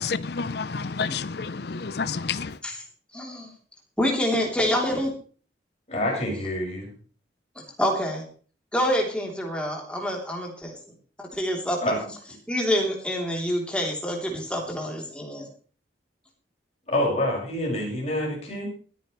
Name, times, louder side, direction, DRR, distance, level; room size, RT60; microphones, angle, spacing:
voice 1, 0.0-2.5, left 5 dB, 60° left, 0.6 m, -29 dB
voice 2, 3.1-3.5 4.0-5.1 7.8-8.2 8.7-10.7 11.2-11.8 12.5-15.5, equal, 5° left, 3.3 m, -26 dB
voice 3, 5.9-6.9 11.8-12.0 16.9-18.7, left 1 dB, 35° left, 6.0 m, -27 dB
22.0 x 10.0 x 3.2 m
head